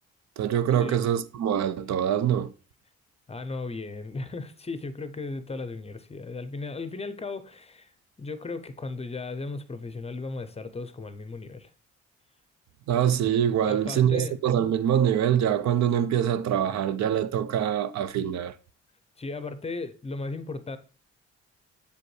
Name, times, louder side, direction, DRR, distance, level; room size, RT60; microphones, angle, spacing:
voice 1, 0.4-2.5 12.9-18.5, right 9 dB, 65° right, 0.5 m, -24 dB
voice 2, 3.3-7.9 8.2-11.7 13.7-14.4 19.2-20.8, left 3 dB, 20° left, 0.6 m, -36 dB
6.8 x 5.0 x 3.2 m
cardioid pair, 90°, 30 cm